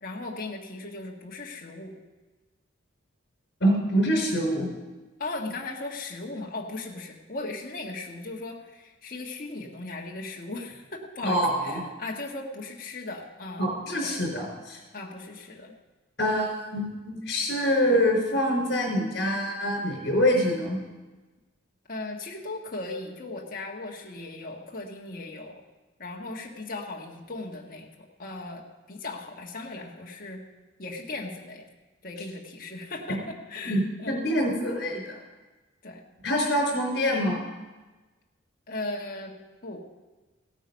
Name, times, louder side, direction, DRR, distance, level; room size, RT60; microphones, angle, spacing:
voice 1, 0.0-1.9 5.2-13.7 14.0-14.2 14.9-15.7 21.9-25.6 26.0-30.4 30.8-31.7 32.0-34.2 35.8-36.0 38.7-39.3 39.6-39.8, left 2 dB, 45° left, -1 dB, 1.5 m, -37 dB
voice 2, 3.6-4.7 11.2-11.5 13.6-14.8 16.2-20.8 33.6-35.1 36.2-37.4, equal, 60° left, 0 dB, 4.5 m, -25 dB
16.5 x 9.1 x 5.3 m, 1.2 s
head